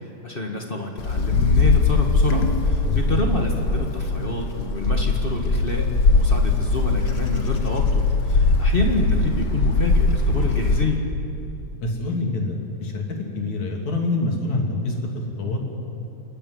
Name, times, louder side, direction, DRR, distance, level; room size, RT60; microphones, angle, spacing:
voice 1, 0.2-11.0, left 2 dB, 25° left, 1 dB, 1.4 m, -27 dB
Wind, 1.0-11.0, left 3 dB, 55° left, 1.0 m, -21 dB
voice 2, 2.8-3.2 11.8-15.6, left 2 dB, 70° left, 0 dB, 4.0 m, -26 dB
27.5 x 12.5 x 9.5 m, 2.8 s
omnidirectional pair, 3.4 m